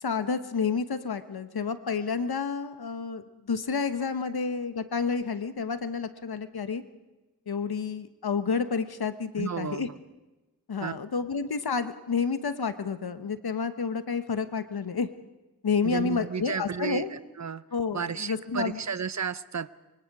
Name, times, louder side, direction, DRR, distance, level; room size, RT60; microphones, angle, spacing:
voice 1, 0.0-6.8 7.5-9.9 10.7-15.1 15.6-17.1 17.7-18.8, left 5 dB, 75° left, 10 dB, 1.2 m, -30 dB
voice 2, 9.4-10.0 10.8-11.0 15.8-17.6 17.9-19.7, right 6 dB, 45° right, 16 dB, 0.6 m, -33 dB
25.0 x 24.0 x 4.8 m, 1.1 s
wide cardioid pair, 55°, 38 cm